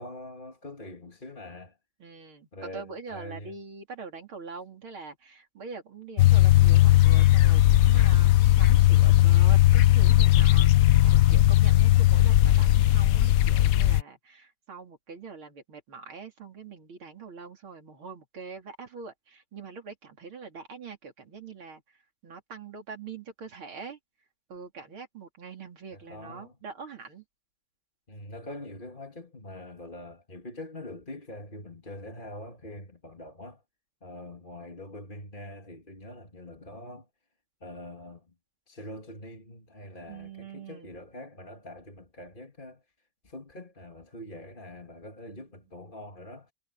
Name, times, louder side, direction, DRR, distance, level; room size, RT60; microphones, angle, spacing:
voice 1, 0.0-1.8 2.5-3.6 25.9-26.6 28.1-33.6 34.0-37.1 37.6-38.3 38.7-42.8 43.2-46.5, left 1 dB, 25° left, 2.8 m, -44 dB
voice 2, 2.0-21.8 22.2-24.0 24.5-27.2 40.1-40.9 45.3-45.4, right 5 dB, 90° right, 4.1 m, -43 dB
sound 1, 6.2-14.0, left 14 dB, 85° left, 0.7 m, -18 dB
omnidirectional pair, 2.2 m